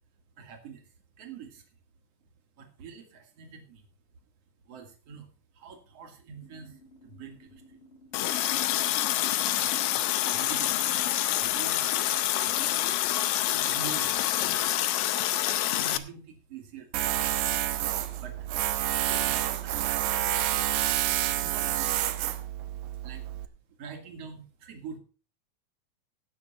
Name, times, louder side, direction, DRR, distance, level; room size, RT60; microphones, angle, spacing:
voice 1, 0.4-0.8 1.2-1.7 2.6-3.9 4.7-5.3 5.5-7.8 8.7-10.9 11.2-14.8 15.4-17.3 18.2-18.5 18.9-20.6 21.2-22.1 22.7-23.4 23.8-25.0, right 6 dB, 55° right, 5 dB, 2.8 m, -46 dB
sound 1, 6.4-11.4, equal, 45° left, 3.4 m, -55 dB
Water tap faucet, 8.1-16.0, left 13 dB, 90° left, 1.3 m, -27 dB
Tools, 16.9-23.5, right 12 dB, 80° right, 2.2 m, -28 dB
17.5 x 6.6 x 4.2 m, 0.37 s
omnidirectional pair, 3.4 m